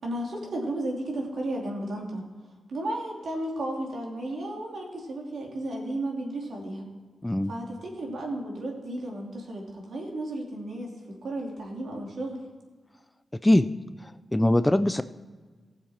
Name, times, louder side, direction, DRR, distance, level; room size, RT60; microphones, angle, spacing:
voice 1, 0.0-2.2 2.7-6.8 7.5-10.9 11.2-12.4, right 1 dB, 70° right, -1 dB, 2.9 m, -33 dB
voice 2, 14.3-15.0, left 1 dB, 10° left, 12 dB, 0.4 m, -21 dB
17.0 x 7.2 x 4.4 m, 1.4 s
wide cardioid pair, 105°, 0 cm